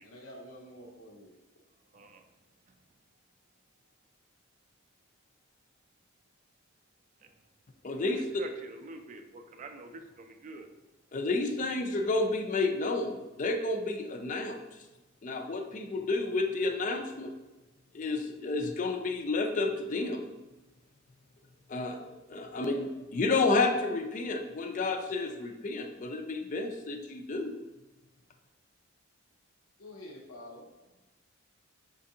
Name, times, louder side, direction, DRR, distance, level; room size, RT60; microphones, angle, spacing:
voice 1, 0.0-1.3 22.5-22.8 29.8-30.7, left 1 dB, 85° left, -1 dB, 0.7 m, -48 dB
voice 2, 1.9-2.3 7.2-7.3 7.9-8.1 8.4-10.7, right 2 dB, 35° right, 6 dB, 0.3 m, -46 dB
voice 3, 7.8-8.4 11.1-14.6 15.2-17.3 17.9-20.2 21.7-22.0 22.3-27.5, left 3 dB, 40° left, 5 dB, 0.4 m, -30 dB
5.9 x 2.5 x 2.7 m, 1.1 s
head